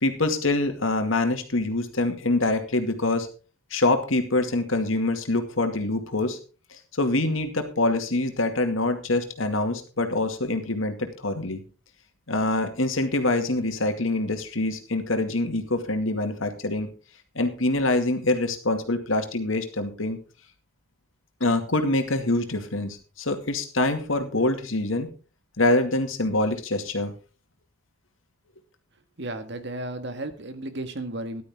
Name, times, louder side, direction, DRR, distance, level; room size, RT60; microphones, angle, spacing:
voice 1, 0.0-3.3 3.7-6.4 6.7-11.6 12.3-16.9 17.4-20.2 21.4-25.1 25.6-27.1, left 2 dB, 90° left, 6 dB, 2.3 m, -25 dB
voice 2, 29.2-31.4, right 1 dB, 60° right, 9 dB, 1.8 m, -34 dB
14.0 x 12.0 x 3.7 m, 0.35 s
head